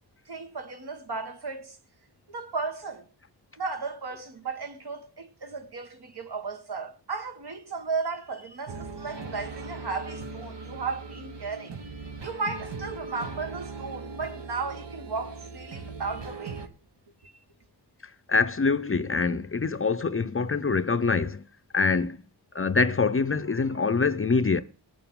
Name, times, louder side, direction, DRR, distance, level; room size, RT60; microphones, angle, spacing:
voice 1, 0.3-1.8 2.3-3.1 3.6-16.6 17.2-17.3, right 4 dB, 65° right, 1.4 m, -35 dB
sound 1, 8.7-16.7, right 4 dB, 80° right, 1.3 m, -39 dB
voice 2, 18.3-21.4 21.7-22.2 22.5-24.6, left 4 dB, 30° left, 0.5 m, -24 dB
19.0 x 6.9 x 3.7 m
wide cardioid pair, 110°, 42 cm